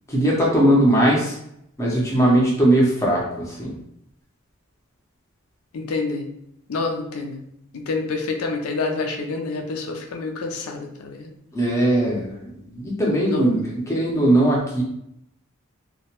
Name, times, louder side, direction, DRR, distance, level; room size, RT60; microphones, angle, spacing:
voice 1, 0.1-1.4 1.8-3.8 11.5-14.8, right 1 dB, 15° left, -4 dB, 0.5 m, -19 dB
voice 2, 5.7-6.3 6.7-7.4 7.7-11.3 13.3-13.5, left 3 dB, 80° left, 2 dB, 0.4 m, -27 dB
2.2 x 2.1 x 2.8 m, 0.77 s
head